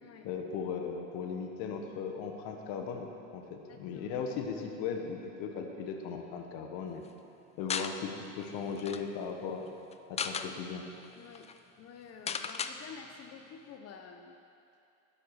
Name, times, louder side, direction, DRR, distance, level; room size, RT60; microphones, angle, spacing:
voice 1, 0.2-7.0 7.6-9.6 10.1-10.8, left 6 dB, 65° left, 3 dB, 1.4 m, -37 dB
voice 2, 3.4-4.2 11.2-11.5 11.8-14.4, left 6 dB, 40° left, 5 dB, 0.8 m, -50 dB
sound 1, 7.7-7.9 8.4-8.5 8.8-9.0 9.9-10.5 11.0-11.1 11.4-11.5 12.3-12.7, left 6 dB, 15° left, 0.4 m, -35 dB
11.5 x 11.0 x 4.9 m, 2.7 s
supercardioid pair, 105°, 39 cm